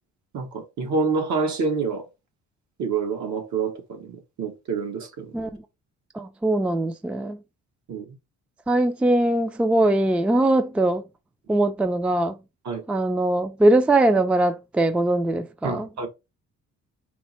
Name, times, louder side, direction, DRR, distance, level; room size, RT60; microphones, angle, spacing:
voice 1, 0.3-2.1 2.8-5.3 7.9-8.1 12.6-12.8 15.6-16.1, right 4 dB, 70° right, 1.2 m, -27 dB
voice 2, 6.1-7.4 8.7-11.0 11.5-12.4 12.9-15.9, right 1 dB, 5° right, 0.3 m, -21 dB
4.4 x 2.0 x 4.2 m
cardioid pair, 90°, 30 cm